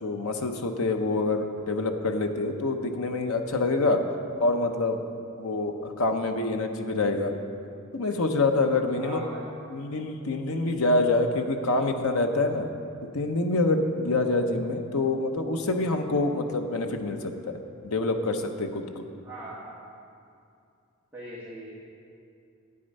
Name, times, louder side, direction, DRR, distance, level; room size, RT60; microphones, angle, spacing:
voice 1, 0.0-4.0 4.4-5.0 5.4-7.3 7.9-9.3 9.7-12.7 13.1-19.0, left 2 dB, 85° left, 5 dB, 0.9 m, -26 dB
voice 2, 9.0-9.5 19.2-19.8 21.1-21.7, right 1 dB, 10° right, -9 dB, 1.8 m, -40 dB
12.5 x 8.7 x 5.4 m, 2.5 s
head